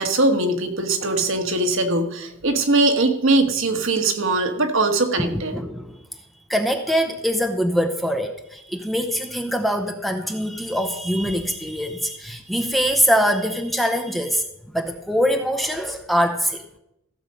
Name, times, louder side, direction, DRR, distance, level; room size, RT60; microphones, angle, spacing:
voice 1, 0.0-5.5, right 2 dB, 60° right, 5 dB, 1.4 m, -21 dB
voice 2, 5.2-6.0 6.5-16.8, equal, ahead, 5 dB, 0.7 m, -23 dB
15.0 x 7.2 x 5.3 m, 0.82 s
head